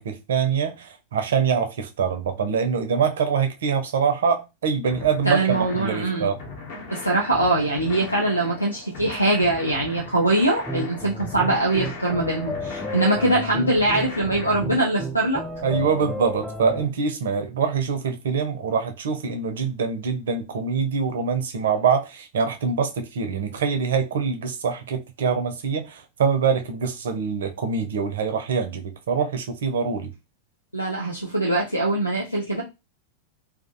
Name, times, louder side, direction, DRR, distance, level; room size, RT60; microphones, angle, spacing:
voice 1, 0.0-6.4 15.6-30.1, right 6 dB, 60° right, 0.4 m, -24 dB
sound 1, 4.9-14.6, left 3 dB, 55° left, 0.7 m, -38 dB
voice 2, 5.2-6.3 6.9-15.4 30.7-32.6, right 2 dB, 90° left, 0.4 m, -22 dB
sound 2, 10.6-16.9, equal, ahead, 0.4 m, -33 dB
2.3 x 2.1 x 2.6 m
figure-of-eight pair, 90°, 0 cm